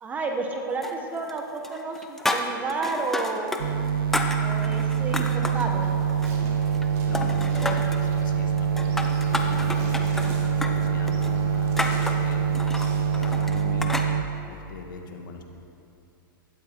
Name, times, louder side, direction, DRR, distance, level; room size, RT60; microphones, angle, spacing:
voice 1, 0.0-3.6 4.4-5.9, right 3 dB, 15° right, 3 dB, 1.0 m, -31 dB
sound 1, 0.8-1.4 1.6-3.6 3.9-5.7 6.1-6.9 7.1-8.0 8.6-14.1, left 1 dB, 5° left, 0.6 m, -31 dB
sound 2, 3.6-14.2, right 7 dB, 90° right, 0.9 m, -25 dB
Insect, 5.8-13.4, right 3 dB, 40° right, 2.9 m, -43 dB
voice 2, 7.1-13.9 14.5-15.4, left 4 dB, 60° left, 3 dB, 1.8 m, -40 dB
15.5 x 12.5 x 4.5 m, 2.7 s
hypercardioid pair, 160°, 12 cm